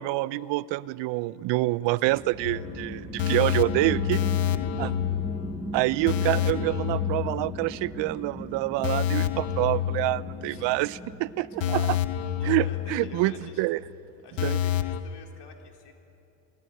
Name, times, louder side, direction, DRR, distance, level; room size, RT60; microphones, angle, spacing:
voice 1, 0.0-4.2 4.8-4.9 5.7-12.0 12.5-13.8 14.4-14.6, right 19 dB, 75° right, 20 dB, 0.6 m, -27 dB
sound 1, 2.0-14.1, right 1 dB, 5° right, 0.8 m, -40 dB
sound 2, 2.4-8.0 8.3-8.4 8.8-10.8 11.1-11.2 11.6-13.5 13.8-13.9 14.4-15.0, left 11 dB, 85° left, 1.0 m, -28 dB
voice 2, 12.4-13.7 14.2-15.9, left 5 dB, 60° left, 2 dB, 3.3 m, -48 dB
19.0 x 17.0 x 9.2 m, 2.8 s
supercardioid pair, 75°, 44 cm